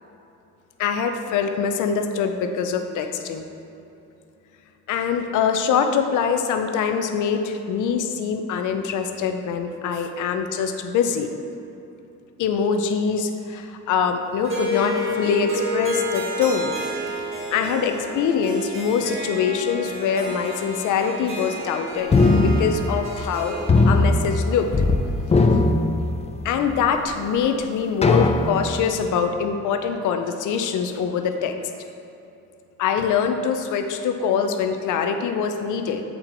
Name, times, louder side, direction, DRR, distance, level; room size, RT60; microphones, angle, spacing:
voice 1, 0.8-3.4 4.9-11.3 12.4-16.7 17.5-23.6 23.9-24.7 26.4-31.6 32.8-36.0, left 6 dB, 80° left, 6 dB, 0.6 m, -24 dB
Harp, 14.4-25.7, left 1 dB, 45° right, 1.5 m, -31 dB
sound 1, 22.1-23.4 23.7-25.0 25.2-26.6 27.1-27.2 28.0-28.9, left 3 dB, 20° left, 0.4 m, -19 dB
7.9 x 4.4 x 3.9 m, 2.9 s
cardioid pair, 90°, 30 cm